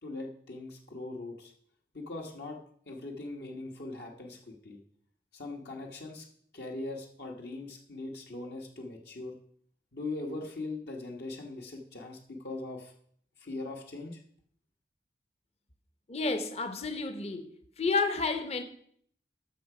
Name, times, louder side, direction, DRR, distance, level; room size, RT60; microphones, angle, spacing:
voice 1, 0.0-1.5 1.9-2.6 2.8-4.8 5.3-6.3 6.5-9.3 9.9-12.9 13.4-14.2, left 2 dB, 65° left, 1.4 m, -40 dB
voice 2, 16.1-17.5 17.8-18.6, left 3 dB, 35° left, 0.8 m, -30 dB
13.5 x 5.9 x 4.9 m
head